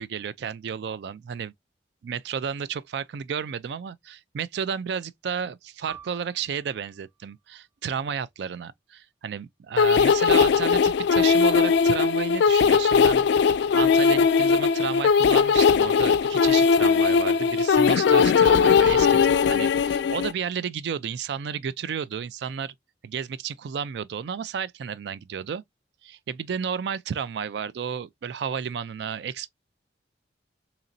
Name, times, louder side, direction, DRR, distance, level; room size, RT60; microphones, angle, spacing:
voice 1, 0.0-1.5 2.0-13.3 13.7-22.7 23.0-25.6 26.0-29.5, right 7 dB, 65° right, 0.3 m, -32 dB
Piano, 5.9-10.9 11.3-11.4 12.2-12.6, right 8 dB, 5° left, 0.8 m, -50 dB
sound 1, 9.8-20.3, left 6 dB, 70° left, 0.3 m, -19 dB
4.0 x 2.9 x 2.5 m
head